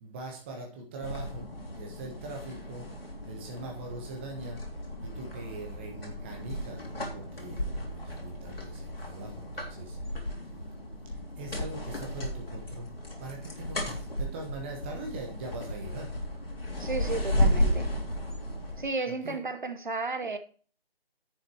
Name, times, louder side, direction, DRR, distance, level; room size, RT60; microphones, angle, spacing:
voice 1, 0.0-1.5 1.7-2.9 3.2-4.6 5.0-10.4 11.0-12.9 13.2-16.1 17.3-17.6 19.0-19.4, right 2 dB, 10° right, 1.2 m, -42 dB
sound 1, 1.0-18.9, equal, 70° left, 3.2 m, -34 dB
voice 2, 16.8-17.9 18.8-20.4, right 3 dB, 50° right, 0.9 m, -33 dB
10.0 x 6.8 x 4.5 m
figure-of-eight pair, 155°, 30 cm